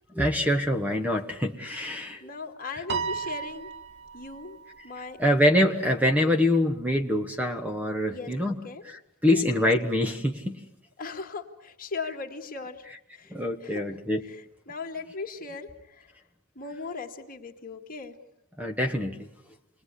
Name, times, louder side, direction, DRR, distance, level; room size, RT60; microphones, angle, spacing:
voice 1, 0.1-2.3 2.7-2.8 5.2-10.6 13.3-14.2 18.6-19.2, left 1 dB, 5° right, 6 dB, 1.3 m, -25 dB
voice 2, 2.2-3.7 4.1-4.6 4.8-5.2 8.1-8.8 9.3-9.4 11.0-12.9 13.1-13.9 14.2-16.1 16.6-18.1, left 4 dB, 40° left, 3 dB, 2.3 m, -38 dB
Piano, 2.9-5.4, right 5 dB, 50° right, 1.6 m, -35 dB
29.0 x 20.5 x 9.9 m, 0.87 s
head